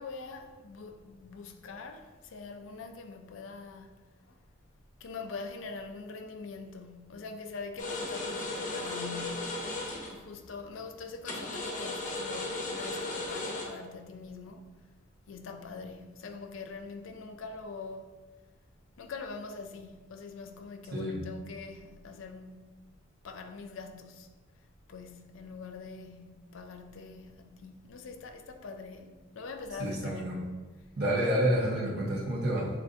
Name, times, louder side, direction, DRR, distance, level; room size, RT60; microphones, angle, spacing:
voice 1, 0.0-3.9 5.0-9.6 10.1-14.7 15.3-18.1 19.0-22.6 23.2-24.3 24.9-30.2 31.9-32.2, left 4 dB, 80° left, 0.4 m, -43 dB
sound 1, 7.8-10.2 11.2-13.6, left 2 dB, 40° left, 0.7 m, -36 dB
voice 2, 29.8-30.4 31.0-32.7, right 1 dB, 55° right, 1.2 m, -29 dB
7.4 x 2.6 x 2.5 m
head